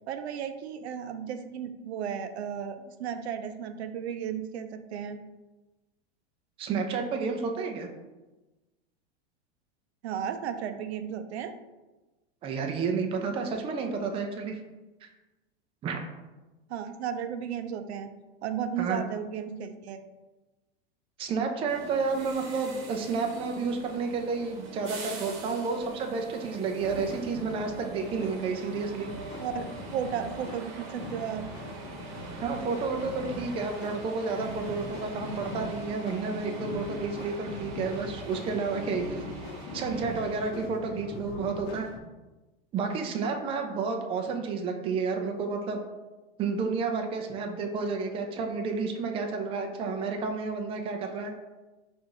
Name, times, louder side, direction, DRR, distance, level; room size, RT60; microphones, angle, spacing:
voice 1, 0.1-5.2 10.0-11.5 16.7-18.1 18.4-20.0 29.4-29.6 29.9-31.5, right 8 dB, 85° right, 9 dB, 0.5 m, -34 dB
voice 2, 6.6-7.9 12.4-14.5 15.0-15.1 15.8-16.0 18.8-19.0 21.2-29.1 32.4-39.2 39.7-41.9 42.7-45.8 46.4-51.3, right 4 dB, 20° right, 3 dB, 0.4 m, -31 dB
sound 1, 21.7-40.5, right 3 dB, 50° right, 1.0 m, -44 dB
sound 2, 26.7-42.0, left 2 dB, 70° left, 0.8 m, -41 dB
4.5 x 2.6 x 3.7 m, 1.1 s
supercardioid pair, 130°, 32 cm